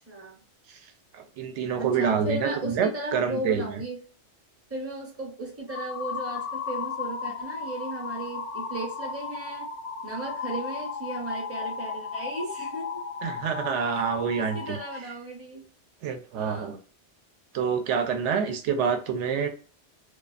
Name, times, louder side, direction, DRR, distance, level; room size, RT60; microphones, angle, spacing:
voice 1, 0.1-0.4 1.8-4.0 4.7-9.7 10.0-13.0 13.9-15.6 16.3-16.7, right 2 dB, 15° right, -1 dB, 0.5 m, -35 dB
voice 2, 1.1-3.8 13.2-14.8 16.0-16.8 17.5-19.5, right 6 dB, 80° right, 6 dB, 0.9 m, -27 dB
sound 1, 5.7-15.0, left 5 dB, 80° left, 0.9 m, -35 dB
2.4 x 2.3 x 2.3 m, 0.39 s
omnidirectional pair, 1.2 m